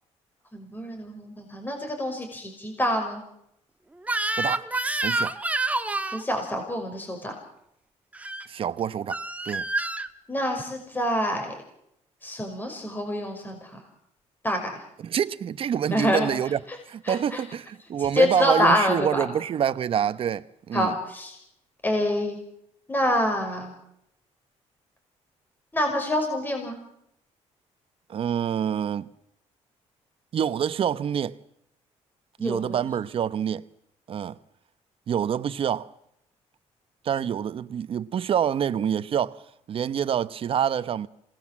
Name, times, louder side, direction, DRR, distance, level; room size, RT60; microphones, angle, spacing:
voice 1, 0.5-3.2 6.1-7.4 10.3-11.5 12.2-13.8 14.4-14.7 15.9-16.3 16.7-16.8 17.1-17.4 18.0-19.2 20.7-21.4 21.8-22.4 22.9-23.7 25.7-26.8 32.4-32.9, left 1 dB, 15° left, 5.8 m, -26 dB
Crying sobbing / Screech, 4.0-6.2 8.1-8.5 9.1-10.1, right 2 dB, 10° right, 1.4 m, -28 dB
voice 2, 4.4-4.7 5.0-5.3 8.5-9.2 9.4-9.7 15.0-16.6 16.9-20.9 28.1-29.1 30.3-31.4 32.4-33.6 34.1-34.4 35.1-35.9 37.0-39.4 39.7-41.1, right 9 dB, 50° right, 1.0 m, -26 dB
27.5 x 19.5 x 7.5 m
cardioid pair, 120°, 12 cm